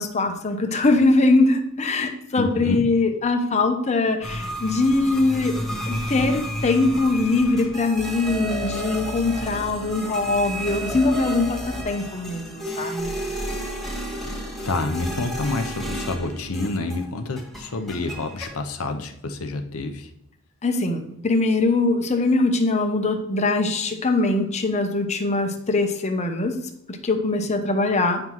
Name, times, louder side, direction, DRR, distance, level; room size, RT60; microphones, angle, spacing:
voice 1, 0.0-5.6 5.9-13.1 20.6-26.6 27.0-28.2, left 2 dB, 30° left, 5 dB, 0.8 m, -22 dB
voice 2, 2.4-2.8 14.6-20.1, left 2 dB, 80° left, 5 dB, 0.7 m, -28 dB
sound 1, 4.2-17.1 17.4-18.5, equal, ahead, 1.2 m, -32 dB
8.7 x 5.6 x 3.0 m, 0.75 s
head